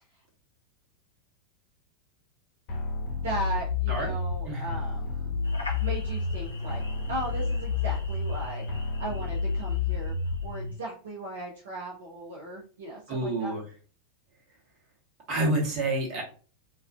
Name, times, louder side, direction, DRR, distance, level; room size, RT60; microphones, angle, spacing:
sound 1, 2.7-10.7, left 4 dB, 40° left, 0.7 m, -30 dB
voice 1, 3.2-5.3 5.8-6.8 7.1-8.6 9.0-10.1 10.4-13.5, right 2 dB, 65° right, -2 dB, 0.6 m, -37 dB
sound 2, 5.4-10.8, left 1 dB, 80° left, 0.5 m, -45 dB
voice 2, 13.1-13.6 15.3-16.2, right 2 dB, 40° right, -2 dB, 1.1 m, -28 dB
2.3 x 2.3 x 2.3 m, 0.39 s
figure-of-eight pair, 90°, 0 cm